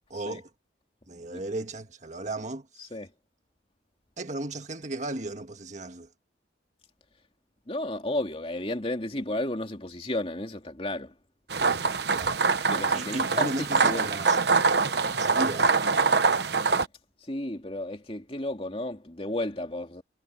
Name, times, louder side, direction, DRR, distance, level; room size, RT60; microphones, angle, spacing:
voice 1, 0.1-0.5 1.1-2.9 4.2-6.1 12.1-12.4 12.9-14.4 14.9-15.8, right 2 dB, 40° right, 1.7 m, -35 dB
voice 2, 7.7-11.1 12.7-14.1 17.3-20.0, left 1 dB, 30° left, 2.8 m, -33 dB
sound 1, 11.5-16.9, right 4 dB, 60° right, 1.0 m, -24 dB
head